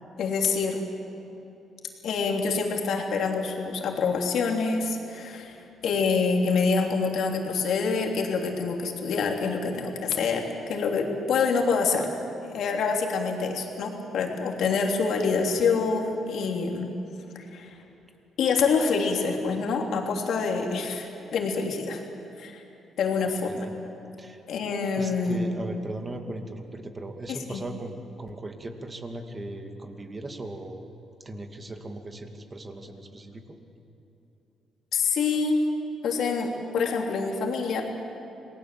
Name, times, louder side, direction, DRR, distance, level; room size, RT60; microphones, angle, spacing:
voice 1, 0.2-0.8 2.0-5.6 5.8-12.1 12.4-16.9 17.3-17.7 18.4-22.0 22.4-22.6 23.0-23.6 24.5-25.5 27.3-27.6 34.9-35.6 36.0-37.9, left 5 dB, 70° left, 2 dB, 3.2 m, -26 dB
voice 2, 23.5-23.8 24.2-24.4 25.0-30.9 31.2-33.4, right 2 dB, 25° right, 5 dB, 2.4 m, -38 dB
27.5 x 19.0 x 7.7 m, 2.9 s
cardioid pair, 90°, 0 cm